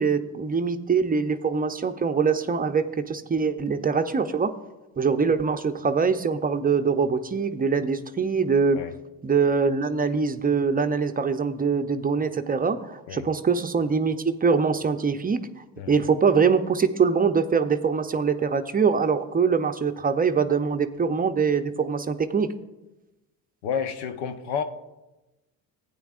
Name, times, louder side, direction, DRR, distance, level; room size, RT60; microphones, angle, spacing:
voice 1, 0.0-4.6 5.0-8.8 9.2-22.5, right 5 dB, 20° right, 0.6 m, -23 dB
voice 2, 15.8-16.2 23.6-24.6, left 7 dB, 75° left, 1.0 m, -30 dB
15.0 x 9.4 x 2.5 m
supercardioid pair, 80°, 40 cm